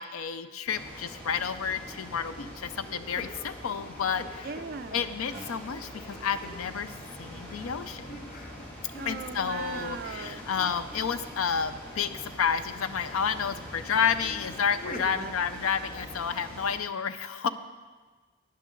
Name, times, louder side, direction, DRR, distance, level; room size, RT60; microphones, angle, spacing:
voice 1, 0.0-4.5 4.9-6.9 7.2-8.2 9.0-17.5, left 7 dB, 80° left, 12 dB, 0.5 m, -30 dB
sound 1, 0.7-16.7, equal, 10° left, 2.3 m, -44 dB
sound 2, 2.8-7.1 7.4-11.5 12.0-12.6 13.7-15.2, left 1 dB, 40° left, 0.7 m, -47 dB
voice 2, 4.4-5.1 9.0-10.4 15.1-15.3, right 5 dB, 45° right, 9 dB, 0.4 m, -39 dB
sound 3, 4.8-16.8, right 2 dB, 30° right, 2.4 m, -59 dB
11.5 x 9.7 x 3.8 m, 1.4 s
head